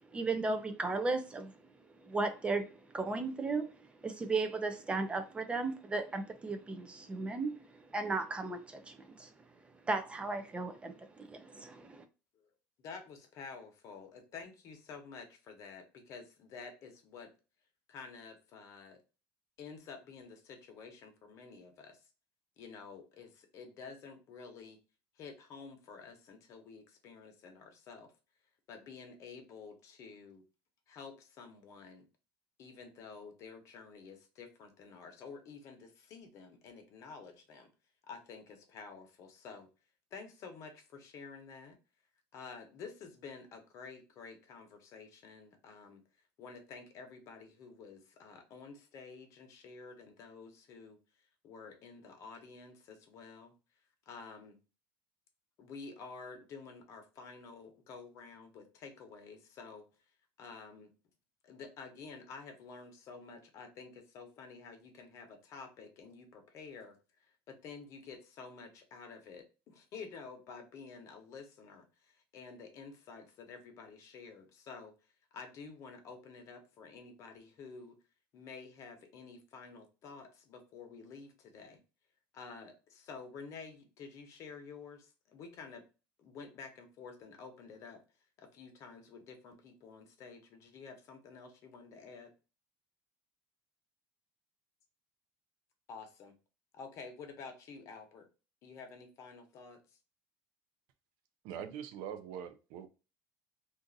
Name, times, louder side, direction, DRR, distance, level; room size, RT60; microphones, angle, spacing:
voice 1, 0.1-1.5 2.0-3.7 4.0-9.3 9.9-12.0, right 3 dB, 15° right, 0.4 m, -35 dB
voice 2, 12.8-17.3 17.9-19.0 19.6-22.1 22.6-24.8 25.2-28.1 28.7-30.4 30.9-32.1 32.6-37.7 38.1-39.7 40.1-41.8 42.3-46.0 46.4-51.0 51.4-53.5 54.1-54.6 55.6-59.8 60.4-60.9 61.4-74.9 75.3-77.9 78.3-81.8 82.3-85.8 86.2-88.0 88.4-92.3 95.9-96.3 96.7-98.3 98.6-100.0, left 5 dB, 50° left, 0.9 m, -50 dB
voice 3, 101.4-102.9, right 9 dB, 75° right, 0.5 m, -43 dB
2.6 x 2.4 x 3.8 m
cardioid pair, 140°, 7 cm